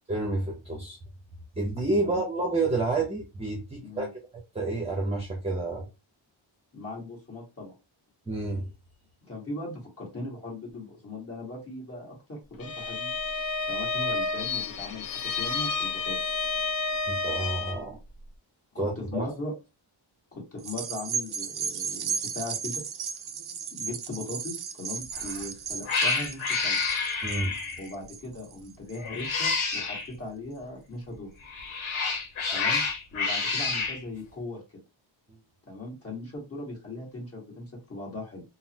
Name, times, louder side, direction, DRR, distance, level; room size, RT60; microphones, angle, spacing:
voice 1, 0.1-1.0 1.6-4.1 4.5-5.9 8.3-8.7 17.1-18.0 18.8-19.3 27.2-27.6, right 2 dB, 15° right, 0 dB, 0.7 m, -29 dB
voice 2, 3.8-4.1 6.7-7.7 9.3-13.2 13.7-16.4 18.7-19.5 20.3-22.8 23.7-26.8 27.8-31.3 32.5-32.8 33.1-34.6 35.7-38.4, left 2 dB, 30° left, -4 dB, 1.5 m, -39 dB
Bowed string instrument, 12.6-17.9, left 4 dB, 45° left, 0.5 m, -30 dB
sound 1, 20.6-29.3 29.7-29.8, right 7 dB, 55° right, 0.5 m, -35 dB
Cat, 25.1-25.4 25.9-27.9 29.0-30.1 31.4-34.0, left 4 dB, 80° left, 1.0 m, -28 dB
3.7 x 2.0 x 2.8 m, 0.27 s
wide cardioid pair, 155°, 48 cm